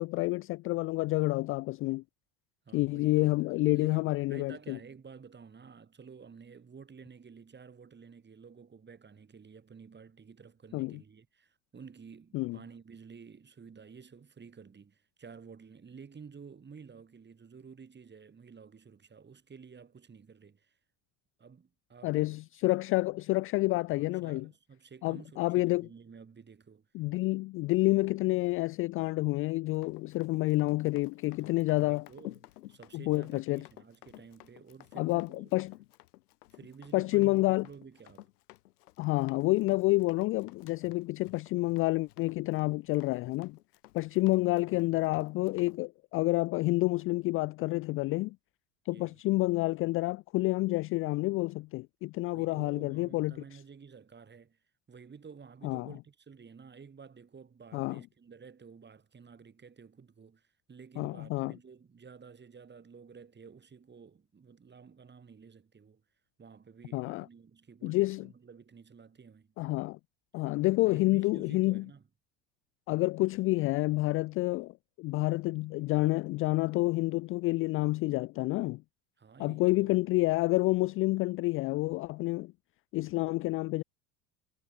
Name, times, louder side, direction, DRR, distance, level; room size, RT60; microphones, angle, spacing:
voice 1, 0.0-2.0 2.7-4.8 10.7-11.0 12.3-12.6 22.0-24.5 25.0-25.9 26.9-32.1 32.9-33.6 35.0-35.7 36.9-37.7 39.0-43.6 43.9-48.4 48.9-53.6 55.6-55.9 57.7-58.0 61.0-61.5 66.9-67.3 67.8-68.3 69.6-70.0 70.3-71.9 72.9-78.8 79.4-82.5 82.9-83.8, left 21 dB, 30° left, 0.3 m, -29 dB
voice 2, 2.6-3.4 3.7-20.8 21.4-22.3 23.9-26.9 31.4-35.5 36.5-38.3 44.3-45.1 48.9-49.2 52.3-54.6 54.9-66.0 66.4-69.5 70.8-72.0 79.2-80.0, right 6 dB, 20° right, 3.0 m, -52 dB
Run, 29.7-45.8, left 17 dB, 70° left, 2.2 m, -54 dB
figure-of-eight pair, 70°, 47 cm